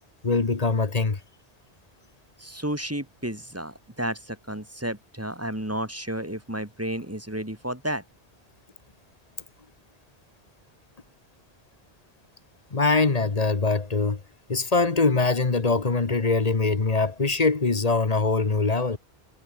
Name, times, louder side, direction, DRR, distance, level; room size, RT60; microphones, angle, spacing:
voice 1, 0.2-1.2 12.7-14.2 14.5-19.0, left 3 dB, 40° left, 1.4 m, -23 dB
voice 2, 2.4-8.0, right 1 dB, 15° right, 2.4 m, -32 dB
omnidirectional pair, 1.1 m